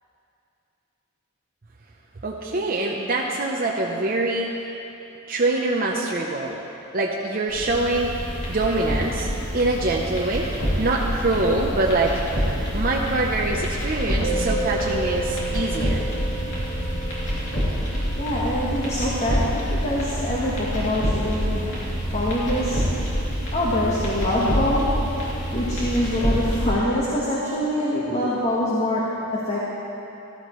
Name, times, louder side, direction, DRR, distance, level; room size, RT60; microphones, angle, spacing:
voice 1, 2.2-4.5 5.3-6.6 6.9-8.1 8.5-9.3 9.5-10.5 10.8-12.2 12.7-16.0, right 2 dB, 40° right, -2 dB, 0.7 m, -24 dB
sound 1, 7.5-26.7, equal, 55° left, 2.8 m, -27 dB
Musical instrument, 14.2-23.7, right 3 dB, 70° right, 1.0 m, -34 dB
voice 2, 18.1-22.9 23.5-25.0 25.5-29.7, left 1 dB, 35° left, -6 dB, 1.3 m, -25 dB
14.5 x 13.0 x 3.1 m, 2.9 s
head